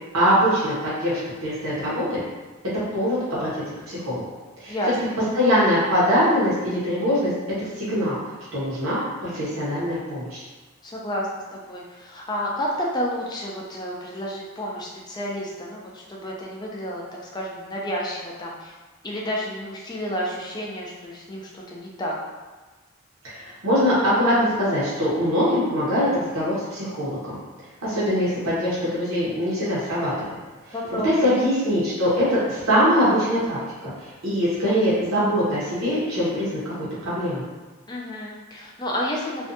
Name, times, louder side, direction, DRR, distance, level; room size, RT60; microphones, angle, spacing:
voice 1, 0.1-2.2 2.7-4.2 4.6-4.8 5.3-7.3 7.6-8.2 8.5-10.4 23.2-27.4 27.8-30.4 30.7-37.4, equal, 90° right, -9 dB, 0.8 m, -23 dB
voice 2, 10.8-18.7 19.0-22.1 30.7-31.3 37.9-39.5, equal, 20° left, -3 dB, 0.4 m, -30 dB
2.5 x 2.2 x 2.6 m, 1.2 s
head